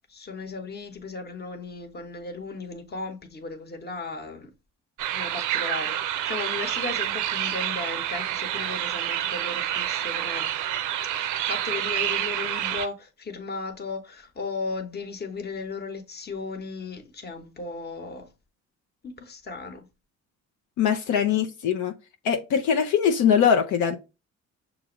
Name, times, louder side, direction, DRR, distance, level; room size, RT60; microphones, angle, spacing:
voice 1, 0.1-4.5 5.1-10.5 11.1-18.3 19.0-19.9, left 3 dB, 35° left, 1.0 m, -36 dB
sound 1, 5.0-12.9, right 11 dB, 90° right, 0.5 m, -28 dB
voice 2, 20.8-21.9 22.2-24.0, left 8 dB, 80° left, 0.6 m, -22 dB
6.0 x 2.6 x 3.0 m
cardioid pair, 90°, 30 cm